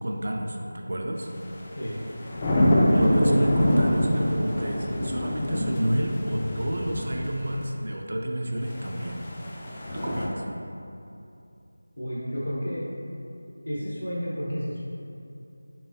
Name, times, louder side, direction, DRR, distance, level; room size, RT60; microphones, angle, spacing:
voice 1, 0.0-0.6 0.9-1.3 3.0-9.2 9.9-10.4, right 1 dB, 60° right, 1 dB, 0.4 m, -29 dB
sound 1, 1.4-7.6 8.7-10.3, left 1 dB, 25° left, 0.3 m, -26 dB
voice 2, 2.8-3.4 12.0-12.9 13.6-14.8, equal, 80° left, -8 dB, 0.8 m, -31 dB
3.8 x 3.0 x 2.7 m, 2.7 s
figure-of-eight pair, 170°, 0 cm